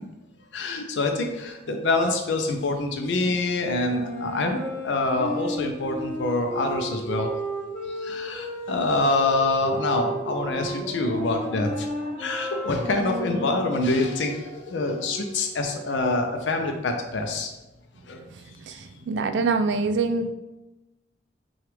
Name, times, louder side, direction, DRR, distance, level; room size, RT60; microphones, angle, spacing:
voice 1, 0.5-7.3 7.9-11.9 12.2-17.5 18.1-18.2, left 2 dB, 85° left, 4 dB, 0.5 m, -26 dB
Wind instrument woodwind instrument, 3.9-13.9, equal, 15° left, 0.7 m, -33 dB
sound 1, 9.6-16.1, right 1 dB, 35° right, 0.9 m, -42 dB
voice 2, 19.1-20.3, right 4 dB, 80° right, 8 dB, 0.3 m, -24 dB
5.8 x 2.4 x 3.3 m, 1.0 s
head